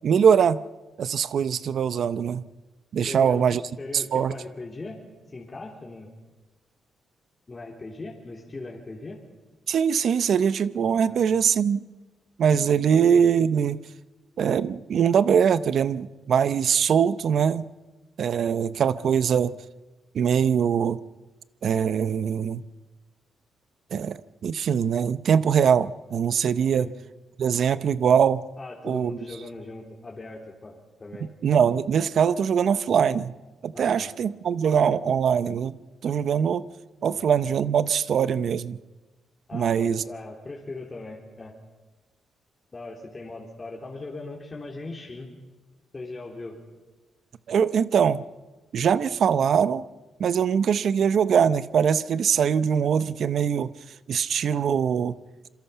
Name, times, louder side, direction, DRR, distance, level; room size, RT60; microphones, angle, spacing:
voice 1, 0.0-0.6 1.0-2.4 2.9-3.6 3.9-4.3 9.7-11.8 12.4-13.8 14.4-17.7 18.2-19.6 20.1-21.0 21.6-22.6 23.9-24.2 24.4-26.9 27.4-28.4 28.8-29.2 31.4-33.3 33.6-35.8 36.0-36.6 37.0-38.8 39.5-40.0 47.5-48.2 48.7-49.8 50.2-53.7 54.1-55.1, right 7 dB, 65° right, 15 dB, 0.7 m, -22 dB
voice 2, 3.1-6.1 7.5-9.2 11.1-11.2 26.7-26.9 28.6-31.6 33.7-34.1 37.1-37.2 39.5-41.5 42.7-45.3 45.9-46.6, left 2 dB, 30° left, -1 dB, 3.4 m, -39 dB
26.5 x 23.0 x 5.7 m, 1.2 s
cardioid pair, 80°, 0 cm